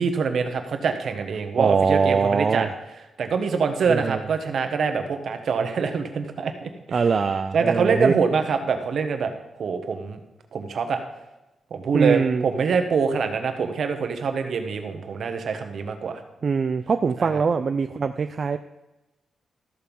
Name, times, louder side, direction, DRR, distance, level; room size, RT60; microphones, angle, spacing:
voice 1, 0.0-2.7 3.2-7.0 7.5-10.2 10.5-11.0 11.7-16.2 17.2-17.4, right 5 dB, 60° right, 6 dB, 1.3 m, -25 dB
voice 2, 1.6-2.7 3.9-4.2 6.9-8.1 11.9-12.4 16.4-18.6, right 5 dB, 40° right, 9 dB, 0.4 m, -22 dB
13.5 x 6.8 x 5.4 m, 1.0 s
wide cardioid pair, 145°, 0 cm